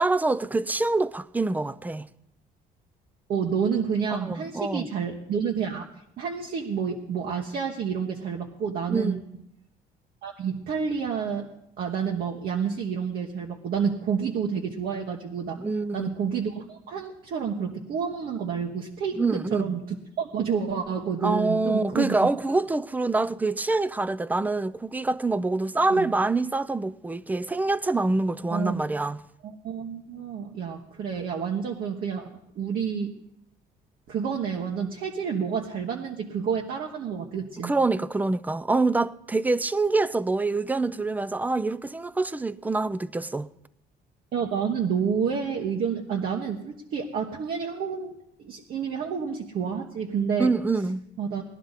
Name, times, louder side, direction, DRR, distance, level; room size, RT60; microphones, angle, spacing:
voice 1, 0.0-2.1 4.2-4.9 8.9-9.1 15.6-16.1 19.2-19.8 21.2-29.2 37.6-43.5 50.4-51.0, right 3 dB, 10° right, 0.4 m, -25 dB
voice 2, 3.3-5.9 6.2-9.2 10.2-11.5 11.8-15.6 15.9-22.2 25.9-26.1 28.5-28.9 29.4-32.2 32.5-33.1 34.1-37.7 44.3-50.5 51.2-51.4, right 6 dB, 60° right, 1.3 m, -29 dB
19.5 x 11.5 x 4.1 m
cardioid pair, 110°, 17 cm